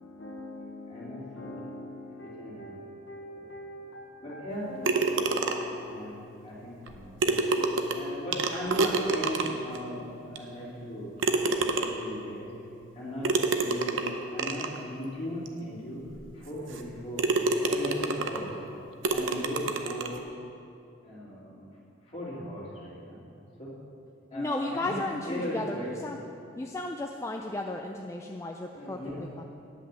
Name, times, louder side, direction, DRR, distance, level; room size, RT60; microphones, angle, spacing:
voice 1, 0.0-8.2, left 1 dB, 65° left, 1.1 m, -45 dB
voice 2, 0.9-1.6 2.2-2.8 4.2-4.7 5.8-7.4 7.9-11.2 11.4-12.6 12.9-14.0 14.3-16.0 16.3-17.3 17.6-18.6 19.1-20.1 21.0-23.2 23.6-23.7 24.3-25.9 28.8-29.4, equal, 30° left, 2.7 m, -38 dB
sound 1, 4.8-5.8 6.9-7.0 7.2-9.8 10.4-10.5 11.2-12.2 13.2-14.8 15.5-15.6 16.1-16.2 16.7-16.9 17.2-18.5 19.0-20.2, right 3 dB, 75° right, 0.7 m, -28 dB
voice 3, 24.3-26.2 26.6-29.4, left 2 dB, 15° left, 0.3 m, -34 dB
9.9 x 5.7 x 7.4 m
head